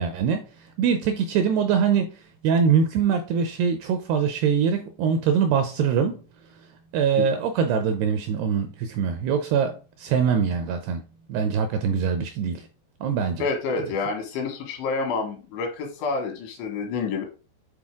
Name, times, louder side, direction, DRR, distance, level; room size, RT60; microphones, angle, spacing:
voice 1, 0.0-6.2 6.9-11.0 11.3-12.7 13.0-13.4, right 7 dB, 80° right, 2.4 m, -23 dB
voice 2, 13.4-17.3, left 4 dB, 80° left, 4.1 m, -28 dB
8.9 x 3.9 x 3.6 m
omnidirectional pair, 5.3 m